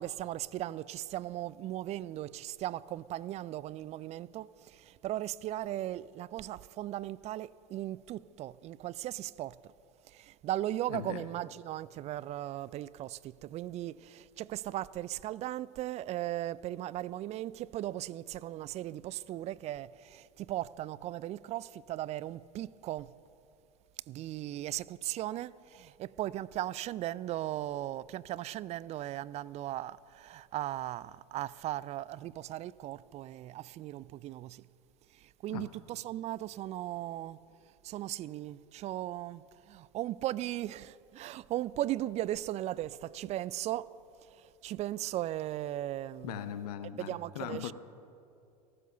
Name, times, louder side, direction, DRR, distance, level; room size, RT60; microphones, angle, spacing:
voice 1, 0.0-9.7 10.1-23.1 24.1-34.6 35.1-37.4 37.8-43.9 44.3-46.4 47.0-47.7, right 14 dB, 30° right, 0.4 m, -37 dB
voice 2, 10.9-11.3 35.5-35.7 46.2-47.7, left 10 dB, 65° left, 0.8 m, -39 dB
14.5 x 14.0 x 6.7 m
hypercardioid pair, 85°, 21 cm